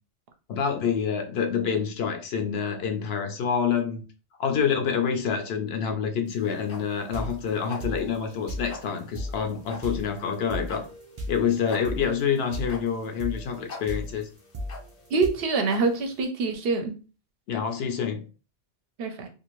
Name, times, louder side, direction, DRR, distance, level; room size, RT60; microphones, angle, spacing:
voice 1, 0.5-4.0 4.4-10.8 11.3-14.3 17.5-18.2, left 7 dB, 70° left, 5 dB, 0.8 m, -27 dB
sound 1, 6.3-16.2, left 3 dB, 90° left, 1.1 m, -45 dB
sound 2, 7.1-15.3, equal, 45° right, 0.4 m, -37 dB
voice 2, 15.1-16.9 19.0-19.3, right 4 dB, 65° right, 5 dB, 0.7 m, -25 dB
2.6 x 2.4 x 3.0 m, 0.35 s
omnidirectional pair, 1.1 m